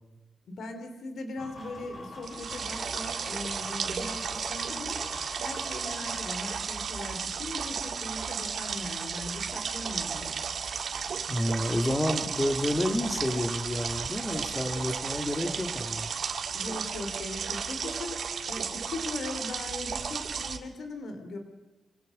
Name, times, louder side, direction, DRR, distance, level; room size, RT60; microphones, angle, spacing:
voice 1, 0.5-5.0 5.4-10.3 16.5-21.4, left 2 dB, 75° left, 7 dB, 3.0 m, -39 dB
sound 1, 1.4-6.6, left 2 dB, 45° left, 6.2 m, -44 dB
sound 2, 2.2-20.6, right 6 dB, 70° right, 1.6 m, -34 dB
voice 2, 11.3-16.1, left 1 dB, 20° left, 5 dB, 2.7 m, -29 dB
24.5 x 17.0 x 6.5 m, 1.1 s
cardioid pair, 70°, 0 cm